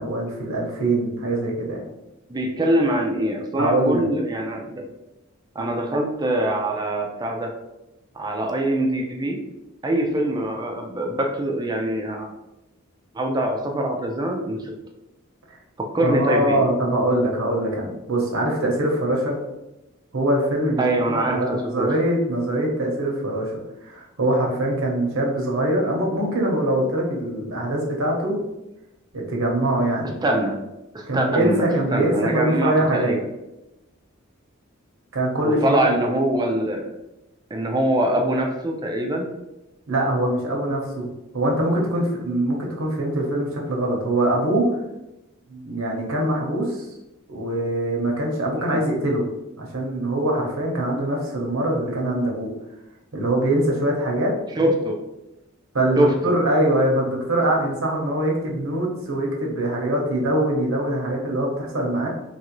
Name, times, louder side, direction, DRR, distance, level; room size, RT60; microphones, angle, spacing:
voice 1, 0.0-1.8 3.6-4.0 5.6-5.8 16.0-19.4 20.1-23.5 23.8-28.4 29.1-30.2 31.1-33.2 35.1-36.0 39.9-41.1 41.3-44.7 45.5-46.9 47.3-49.2 49.6-52.5 53.1-54.3 55.7-62.1, right 1 dB, 85° right, -1 dB, 0.8 m, -23 dB
voice 2, 2.3-4.9 5.6-7.5 8.1-9.4 9.8-12.3 13.1-14.7 15.8-16.6 20.8-21.9 30.2-30.6 30.9-33.2 35.4-36.9 37.5-39.3 48.7-48.8 54.6-55.0 56.0-56.3, right 1 dB, 20° right, 2 dB, 0.3 m, -23 dB
3.0 x 2.5 x 3.0 m, 0.96 s
head